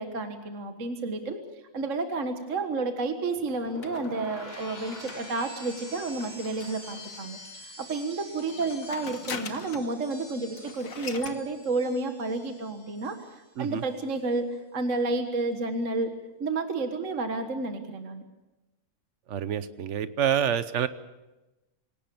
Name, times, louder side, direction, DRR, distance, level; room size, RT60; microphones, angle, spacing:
voice 1, 0.0-1.4 1.7-7.4 7.8-14.5 14.7-16.1 16.4-18.2, right 3 dB, 40° right, 6 dB, 1.7 m, -31 dB
sound 1, 3.4-13.5 13.7-14.2, left 1 dB, 10° left, 5.1 m, -46 dB
sound 2, 3.8-7.5 8.4-10.0 10.3-10.4 10.6-11.4, left 6 dB, 45° left, 1.6 m, -42 dB
voice 2, 19.3-20.9, right 9 dB, 60° right, 13 dB, 0.7 m, -27 dB
27.0 x 18.0 x 7.0 m, 1.0 s
omnidirectional pair, 2.4 m